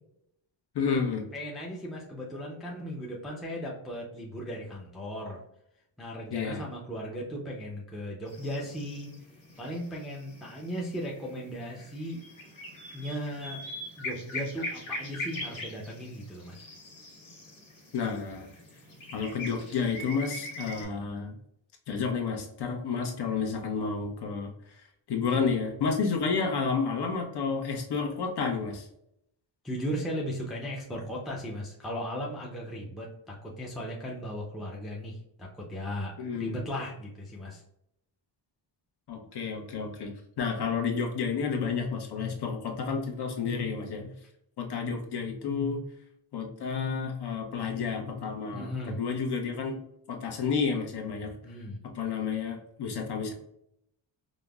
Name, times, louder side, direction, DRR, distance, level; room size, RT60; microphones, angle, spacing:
voice 1, 0.7-1.2 6.3-6.6 17.9-18.5 19.1-21.4 21.9-24.5 25.1-28.9 36.2-36.6 39.1-40.1 40.4-44.1 44.6-45.8 46.3-49.8 50.1-51.3 51.8-53.3, left 5 dB, 55° left, 2 dB, 0.8 m, -30 dB
voice 2, 1.3-5.4 6.0-9.1 9.6-12.2 12.9-13.6 14.0-16.6 29.6-37.6 48.5-49.0 51.4-51.8, equal, ahead, -3 dB, 0.4 m, -37 dB
sound 1, 8.3-20.9, left 1 dB, 85° left, 1.3 m, -42 dB
5.1 x 2.0 x 2.3 m, 0.77 s
wide cardioid pair, 155°, 48 cm